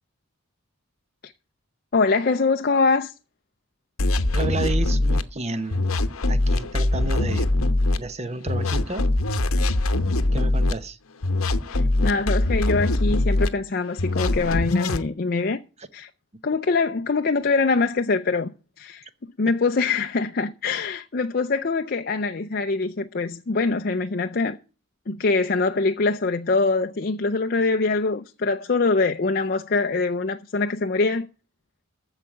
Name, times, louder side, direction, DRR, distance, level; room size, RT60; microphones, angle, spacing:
voice 1, 1.9-3.1 11.7-15.6 15.9-16.1 16.4-18.5 18.8-19.1 19.4-24.6 25.1-31.3, left 3 dB, 45° left, 0.5 m, -23 dB
sound 1, 4.0-5.2 5.7-8.0 8.5-10.7 11.2-13.5 14.0-15.0, left 2 dB, 85° left, 1.0 m, -22 dB
voice 2, 4.3-5.9 6.3-7.5 8.0-9.1 10.3-11.0 15.8-15.9, right 2 dB, 30° right, 0.9 m, -31 dB
14.5 x 4.9 x 9.2 m
head